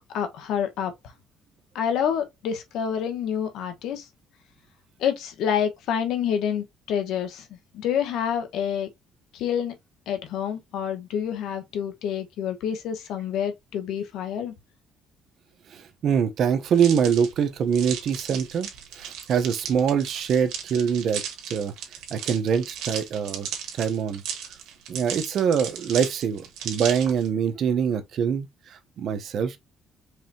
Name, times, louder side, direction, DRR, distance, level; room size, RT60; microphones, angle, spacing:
voice 1, 0.1-0.9 1.7-4.0 5.0-7.5 7.7-8.9 9.3-9.7 10.1-14.5, left 8 dB, 75° left, 1.2 m, -27 dB
voice 2, 15.7-18.7 18.9-21.2 21.5-21.7 22.1-23.5 23.7-24.2 24.9-29.6, right 7 dB, 55° right, 0.8 m, -24 dB
sound 1, 16.7-27.3, right 8 dB, 80° right, 1.5 m, -36 dB
4.8 x 3.3 x 2.8 m
cardioid pair, 125°, 0 cm